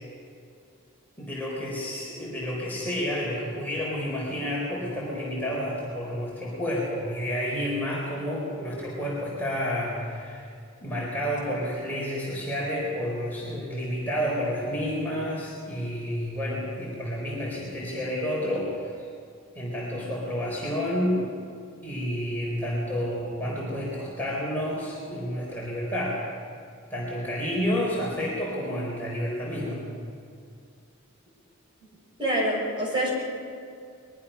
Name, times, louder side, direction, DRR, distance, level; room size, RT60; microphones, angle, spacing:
voice 1, 1.2-10.5 10.8-19.1 19.5-21.2 21.8-26.2 26.9-29.9, equal, 10° left, -5 dB, 4.4 m, -30 dB
voice 2, 32.2-33.1, right 1 dB, 20° right, -3 dB, 6.2 m, -26 dB
22.5 x 22.5 x 5.7 m, 2.4 s
head